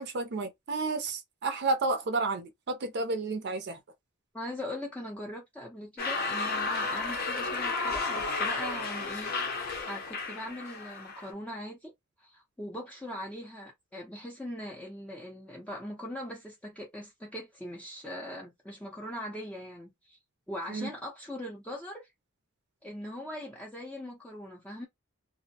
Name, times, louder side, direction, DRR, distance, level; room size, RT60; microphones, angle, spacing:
voice 1, 0.0-3.8 20.7-20.9, right 3 dB, 55° right, 0.5 m, -31 dB
voice 2, 4.3-11.9 12.2-20.2 20.5-22.1 22.8-24.9, left 1 dB, 5° left, 0.5 m, -41 dB
sound 1, 6.0-11.3, left 3 dB, 45° left, 0.6 m, -32 dB
2.5 x 2.0 x 2.7 m
head